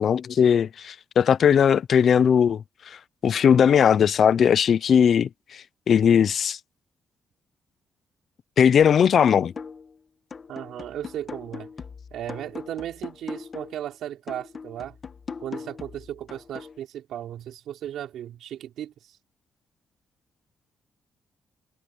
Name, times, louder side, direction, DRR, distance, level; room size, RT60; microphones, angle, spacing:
voice 1, 0.0-3.0 3.2-6.6 8.6-9.5, left 8 dB, 55° left, 0.5 m, -19 dB
sound 1, 9.0-10.0 10.3-13.8 14.3-16.8, left 5 dB, 35° left, 1.7 m, -40 dB
voice 2, 10.5-11.7 12.1-15.0 15.4-19.2, right 11 dB, 90° right, 5.2 m, -36 dB
cardioid pair, 135°, 0 cm